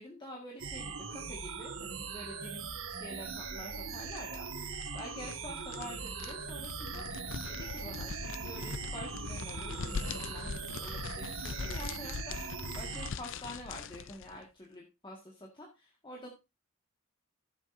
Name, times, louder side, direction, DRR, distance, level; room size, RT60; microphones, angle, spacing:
voice 1, 0.0-16.3, equal, 25° left, -2 dB, 1.8 m, -48 dB
sound 1, 0.6-13.1, right 5 dB, 70° right, 1.7 m, -41 dB
sound 2, 3.7-14.4, left 5 dB, 65° left, 0.5 m, -42 dB
14.5 x 7.4 x 2.7 m, 0.26 s
head